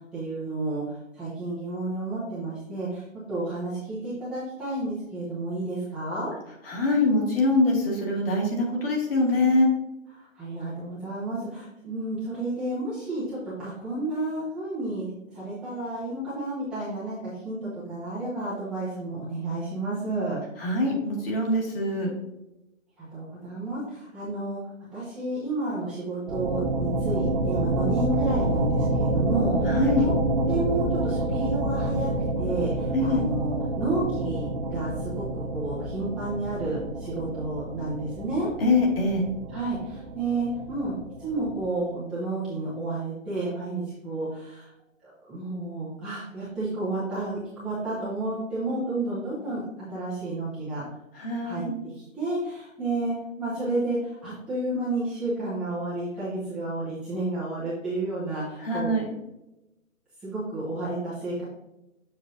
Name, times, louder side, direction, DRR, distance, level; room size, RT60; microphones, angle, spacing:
voice 1, 0.1-3.0 3.3-6.3 10.1-20.4 23.0-24.6 24.9-30.1 30.5-32.1 32.4-38.5 39.5-44.7 45.0-49.6 49.9-50.8 51.1-58.9 60.2-61.4, right 2 dB, ahead, -12 dB, 0.7 m, -31 dB
voice 2, 6.7-9.7 20.6-22.1 29.7-30.0 32.9-33.2 38.6-39.3 51.2-51.7 58.6-59.1, left 2 dB, 45° left, -1 dB, 2.2 m, -23 dB
sound 1, 26.3-41.7, right 2 dB, 40° right, 0.9 m, -28 dB
7.0 x 6.1 x 2.6 m, 0.94 s
figure-of-eight pair, 145°, 40 cm